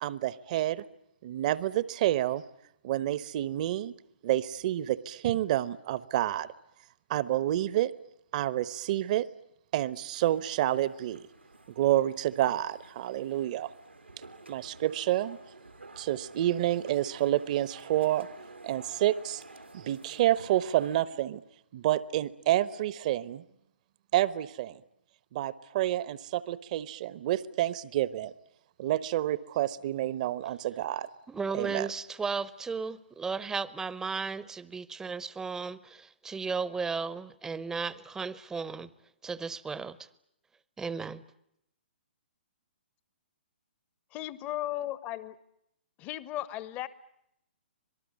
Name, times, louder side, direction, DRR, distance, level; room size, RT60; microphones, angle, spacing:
voice 1, 0.0-0.8 1.2-2.4 2.8-3.9 4.2-6.5 7.1-7.9 8.3-9.3 9.7-11.3 11.7-13.7 14.5-15.4 16.0-18.3 18.6-19.4 19.7-21.4 21.7-23.4 24.1-24.8 25.3-28.3 28.8-31.1 31.5-31.9, right 13 dB, 40° right, 1.1 m, -29 dB
sound 1, 10.1-21.0, right 2 dB, 90° right, 2.4 m, -51 dB
voice 2, 31.3-38.9 39.2-40.1 40.8-41.2, right 5 dB, 10° right, 0.9 m, -35 dB
voice 3, 44.1-45.4 46.0-46.9, left 14 dB, 25° left, 1.0 m, -35 dB
26.0 x 19.5 x 9.6 m
figure-of-eight pair, 125°, 6 cm